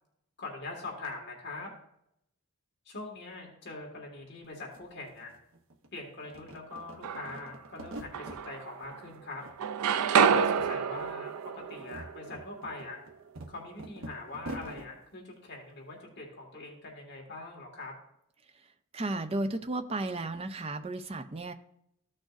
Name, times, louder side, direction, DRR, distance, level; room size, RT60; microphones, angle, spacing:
voice 1, 0.4-1.7 2.8-5.3 5.9-9.4 10.3-13.0 13.5-17.9, left 2 dB, 50° left, 0 dB, 1.6 m, -42 dB
sound 1, 4.4-4.5 4.7-5.9 6.2-8.4 8.8-9.6 9.8-10.7 10.9-11.1 11.6-14.9, right 1 dB, 60° right, 0.8 m, -45 dB
sound 2, 6.7-7.6 8.1-9.2 9.4-13.4, right 7 dB, 85° right, 0.4 m, -29 dB
voice 2, 18.4-21.5, right 2 dB, 25° right, 8 dB, 0.5 m, -34 dB
14.0 x 6.4 x 2.5 m, 0.76 s
head